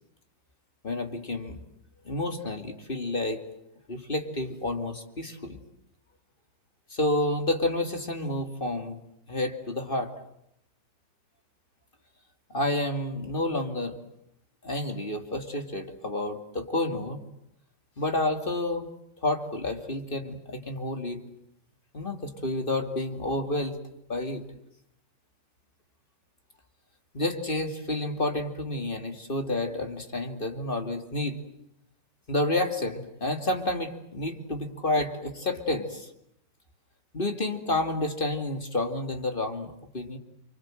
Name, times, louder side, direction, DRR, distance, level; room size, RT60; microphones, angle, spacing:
voice 1, 0.8-1.6 2.0-3.5 3.9-5.6 6.9-9.0 9.3-10.1 12.5-14.0 14.6-17.2 18.0-18.9 19.2-21.2 21.9-23.8 24.1-24.4 27.1-31.4 32.3-36.1 37.1-40.2, left 1 dB, 30° left, 6 dB, 2.7 m, -30 dB
29.0 x 25.0 x 7.8 m, 0.77 s
omnidirectional pair, 1.9 m